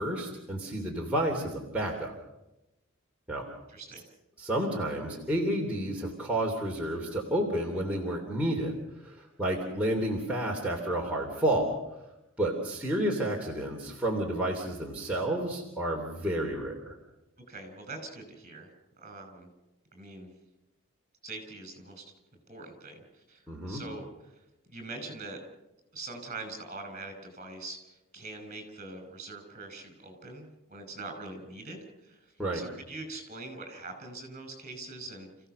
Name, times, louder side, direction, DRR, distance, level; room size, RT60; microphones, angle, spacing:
voice 1, 0.0-2.1 3.3-3.5 4.4-11.7 12.4-16.9 23.5-23.8 32.4-32.6, right 1 dB, 5° right, -3 dB, 3.1 m, -30 dB
voice 2, 3.7-4.0 17.5-18.7 19.0-19.5 19.9-20.3 21.2-22.0 22.5-23.0 23.3-24.1 24.7-25.4 25.9-27.8 28.1-32.2 32.5-35.3, right 3 dB, 35° right, 7 dB, 5.8 m, -43 dB
30.0 x 16.0 x 6.8 m, 0.95 s
head